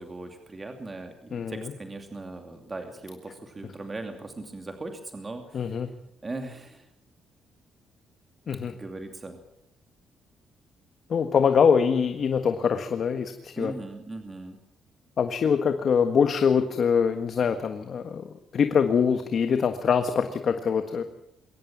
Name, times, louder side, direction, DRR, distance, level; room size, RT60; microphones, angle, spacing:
voice 1, 0.0-5.8 6.2-6.9 8.7-9.4 13.6-14.6, right 2 dB, 25° right, 5 dB, 2.6 m, -39 dB
voice 2, 1.3-1.7 5.5-5.9 8.5-8.7 11.1-13.7 15.2-21.0, left 6 dB, 55° left, 7 dB, 1.5 m, -24 dB
22.5 x 17.5 x 7.4 m, 0.81 s
cardioid pair, 90°, 0 cm